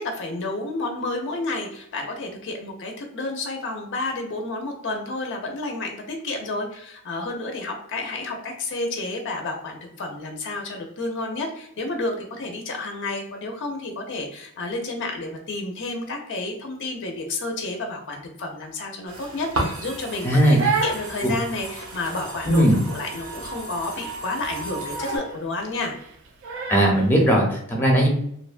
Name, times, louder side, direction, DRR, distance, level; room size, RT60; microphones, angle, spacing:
voice 1, 0.0-20.6 20.8-25.9, left 2 dB, 60° left, 2 dB, 0.5 m, -30 dB
sound 1, 19.1-25.2, right 2 dB, 85° right, 0.7 m, -34 dB
voice 2, 20.2-20.6 21.2-21.3 22.5-22.8 26.7-28.1, equal, 10° left, -1 dB, 0.6 m, -18 dB
Crying sobbing, 20.2-27.1, right 5 dB, 60° right, 0.4 m, -31 dB
2.8 x 2.1 x 2.4 m, 0.71 s
head